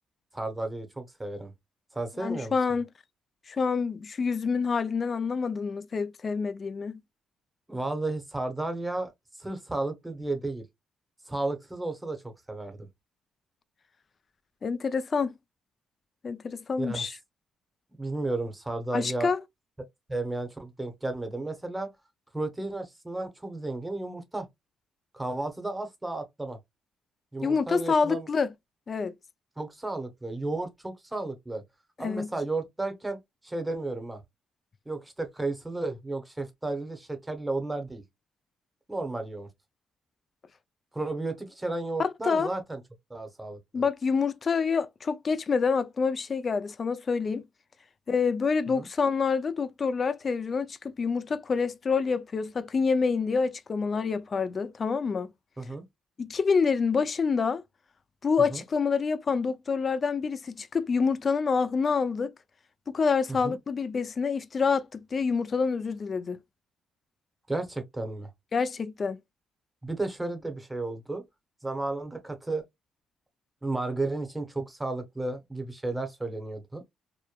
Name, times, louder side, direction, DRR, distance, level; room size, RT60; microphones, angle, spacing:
voice 1, 0.3-1.5 1.9-2.5 7.7-9.1 9.4-10.6 11.3-12.2 12.5-12.8 16.8-17.1 18.0-19.3 20.1-21.9 22.3-24.5 25.1-26.6 27.3-28.3 29.6-31.6 32.0-33.2 33.4-34.2 34.9-38.0 38.9-39.5 40.9-42.8 43.1-43.6 48.7-48.9 55.6-55.8 58.5-58.6 63.4-63.5 67.5-68.3 69.8-71.2 71.6-72.6 73.6-76.8, right 2 dB, 15° right, 0.7 m, -33 dB
voice 2, 2.2-2.9 3.5-7.0 14.6-15.3 16.2-17.2 18.9-19.4 27.4-28.5 28.9-29.1 32.0-32.3 42.0-42.5 43.7-47.4 48.1-55.3 56.2-57.6 58.2-62.3 62.9-66.4 68.5-69.2, left 5 dB, 40° left, 0.3 m, -27 dB
2.9 x 2.1 x 2.2 m
cardioid pair, 90°, 0 cm